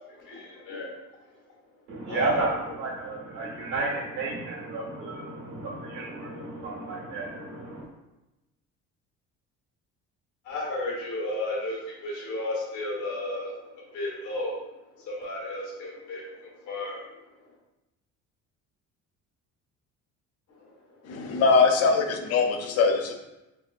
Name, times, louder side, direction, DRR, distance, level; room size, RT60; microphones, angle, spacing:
voice 1, 0.1-0.9 2.1-2.4 10.4-14.6 15.0-17.0, left 2 dB, 70° left, -4 dB, 1.3 m, -33 dB
voice 2, 1.9-7.8, right 3 dB, 85° right, -2 dB, 1.3 m, -32 dB
voice 3, 21.0-23.2, left 4 dB, 55° left, 5 dB, 0.5 m, -22 dB
3.4 x 3.3 x 2.4 m, 0.98 s
cardioid pair, 150°, 31 cm